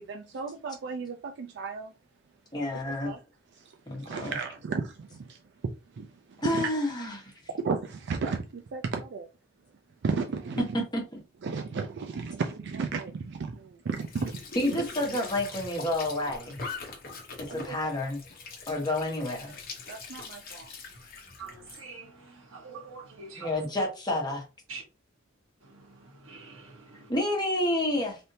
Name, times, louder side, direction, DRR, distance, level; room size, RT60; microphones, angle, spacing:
voice 1, 0.0-1.9 2.9-3.2 3.5-7.0 7.5-9.3 10.0-10.8 11.4-14.4 14.7-14.8 17.5-17.9 19.9-20.7, right 4 dB, 60° right, 0.4 m, -34 dB
voice 2, 2.5-3.1 3.9-4.3 6.4-7.3 10.9-11.0 14.5-16.6 17.5-18.2 18.7-19.5 23.4-24.4 27.1-28.2, left 1 dB, 20° left, 1.2 m, -29 dB
Squeak / Sink (filling or washing) / Trickle dribble, 13.9-21.8, left 4 dB, 45° left, 0.9 m, -42 dB
voice 3, 21.4-23.7 24.7-24.8 25.6-27.1, right 4 dB, 90° right, 1.2 m, -45 dB
3.4 x 2.6 x 2.7 m
head